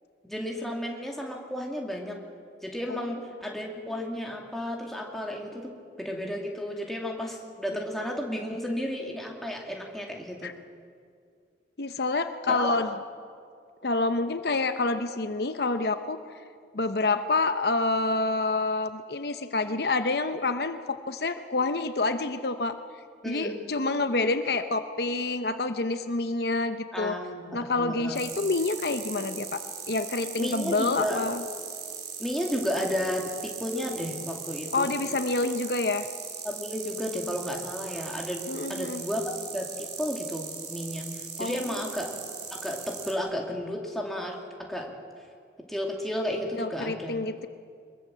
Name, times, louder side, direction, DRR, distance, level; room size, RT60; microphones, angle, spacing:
voice 1, 0.2-2.2 2.6-5.7 6.0-10.5 12.5-12.8 23.2-23.6 26.9-28.2 30.4-31.2 32.2-34.9 36.4-38.4 38.7-41.1 41.4-42.1 42.5-44.4 44.7-44.9 45.7-47.2, equal, ahead, 0 dB, 2.4 m, -33 dB
voice 2, 11.8-12.9 13.8-16.2 16.7-22.8 23.2-27.1 27.5-29.6 29.9-31.4 34.7-36.1 38.5-39.0 41.4-41.8 46.6-47.5, left 3 dB, 60° left, 9 dB, 0.8 m, -28 dB
sound 1, 28.1-43.1, right 6 dB, 70° right, 3.3 m, -39 dB
22.5 x 21.5 x 7.5 m, 2.2 s
head